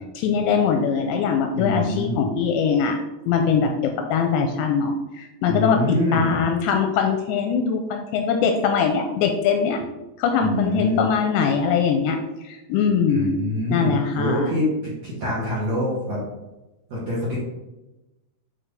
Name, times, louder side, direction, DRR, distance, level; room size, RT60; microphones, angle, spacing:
voice 1, 0.2-3.0 3.3-3.7 4.1-5.8 6.1-9.8 10.2-12.2 12.5-13.4 13.7-14.5, left 6 dB, 85° left, 4 dB, 2.6 m, -22 dB
voice 2, 1.5-2.3 5.5-6.5 10.4-11.0 13.1-16.2 16.9-17.4, left 1 dB, 55° right, -7 dB, 2.0 m, -25 dB
8.8 x 4.4 x 3.3 m, 1.0 s
omnidirectional pair, 5.4 m